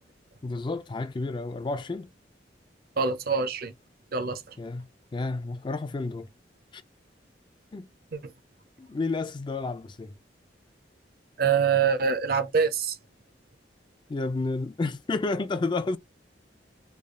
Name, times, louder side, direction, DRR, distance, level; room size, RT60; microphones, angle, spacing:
voice 1, 0.4-2.1 4.6-6.3 6.7-6.8 7.7-7.9 8.8-10.1 14.1-16.0, left 3 dB, 25° left, 0.4 m, -31 dB
voice 2, 3.0-3.7 4.1-4.5 8.1-8.3 11.4-13.0, right 6 dB, 55° right, 0.6 m, -25 dB
3.3 x 2.4 x 3.6 m
head